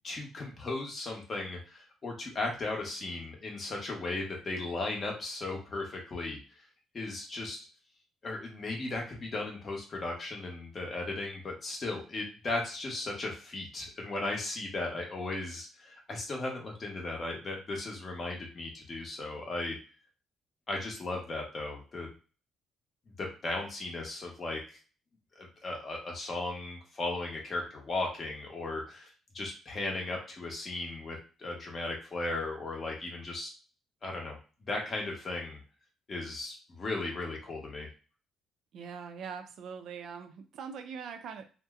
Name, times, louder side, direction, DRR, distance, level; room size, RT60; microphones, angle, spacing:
voice 1, 0.0-6.4 6.9-7.6 8.2-19.8 20.7-22.1 23.2-24.8 25.4-29.1 29.3-33.5 34.0-34.4 34.7-35.6 36.1-37.9, left 2 dB, 30° left, 0 dB, 0.9 m, -36 dB
voice 2, 38.7-41.5, right 6 dB, 60° right, 7 dB, 0.5 m, -42 dB
2.7 x 2.1 x 3.5 m, 0.36 s
cardioid pair, 150°, 0 cm